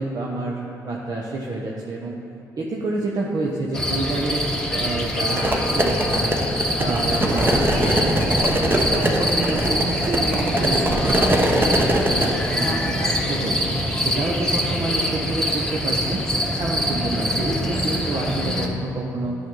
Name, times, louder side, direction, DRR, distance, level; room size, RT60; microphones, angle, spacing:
voice 1, 0.0-2.2 2.6-6.4 6.8-8.1 8.4-13.6 14.0-16.2 16.6-19.4, right 2 dB, 45° right, -3 dB, 0.9 m, -28 dB
sound 1, 3.7-18.7, equal, 10° left, 1.1 m, -24 dB
sound 2, 5.3-12.3, right 1 dB, 25° right, 1.1 m, -22 dB
11.5 x 5.5 x 3.8 m, 2.9 s
hypercardioid pair, 45°, 9 cm